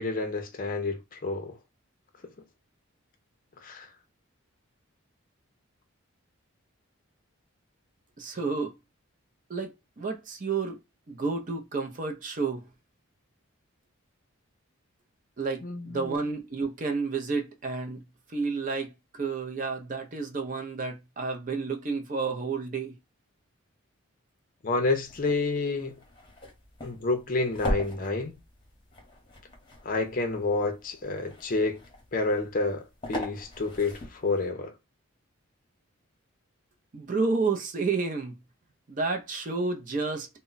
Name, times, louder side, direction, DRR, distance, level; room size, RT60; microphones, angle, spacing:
voice 1, 0.0-1.6 3.6-3.9 15.6-16.2 24.6-26.0 26.8-28.4 29.8-31.8 32.1-34.7, left 3 dB, 40° left, 0.5 m, -29 dB
voice 2, 8.2-8.8 9.5-10.8 11.1-12.6 15.4-18.0 18.3-23.0 36.9-38.4 38.9-40.3, right 4 dB, 35° right, 0.5 m, -30 dB
sound 1, 24.9-34.5, left 1 dB, 20° left, 0.8 m, -40 dB
2.2 x 2.1 x 3.8 m
head